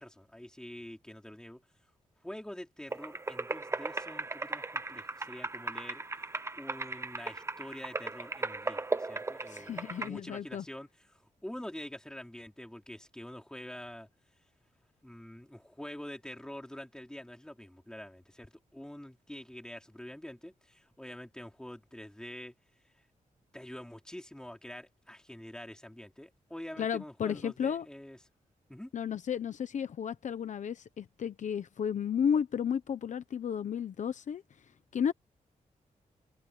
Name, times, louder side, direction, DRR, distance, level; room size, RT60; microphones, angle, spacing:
voice 1, 0.0-1.6 2.2-14.1 15.0-22.5 23.5-28.2 28.7-28.9, left 1 dB, 5° left, 3.5 m, -46 dB
sound 1, 2.9-10.1, right 3 dB, 20° right, 0.9 m, -37 dB
voice 2, 9.5-10.6 26.8-27.8 28.9-34.4 34.9-35.1, left 8 dB, 65° left, 0.9 m, -33 dB
wide cardioid pair, 145°, 14 cm